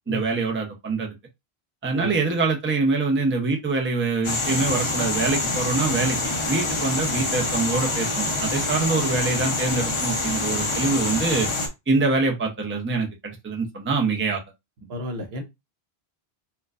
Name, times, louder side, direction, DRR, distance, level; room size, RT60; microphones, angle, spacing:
voice 1, 0.1-1.1 1.8-6.2 6.5-11.5 11.9-14.4, right 3 dB, 15° right, 0.6 m, -24 dB
sound 1, 4.2-11.7, left 2 dB, 35° left, 0.7 m, -26 dB
voice 2, 14.9-15.4, left 1 dB, 75° right, 1.1 m, -32 dB
4.4 x 2.3 x 2.4 m
omnidirectional pair, 1.1 m